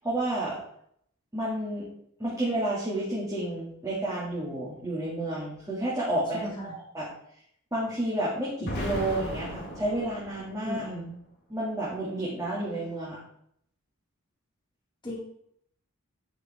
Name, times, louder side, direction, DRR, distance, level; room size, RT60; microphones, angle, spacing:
voice 1, 0.0-0.6 1.3-1.9 2.2-7.1 7.7-10.8 11.5-13.2, right 1 dB, 15° right, -8 dB, 2.5 m, -30 dB
voice 2, 6.3-6.7 10.6-11.1 15.0-15.2, equal, 20° left, -5 dB, 2.3 m, -36 dB
Explosion, 8.6-10.7, equal, 55° left, 3.5 m, -35 dB
10.5 x 5.8 x 3.7 m, 0.69 s
head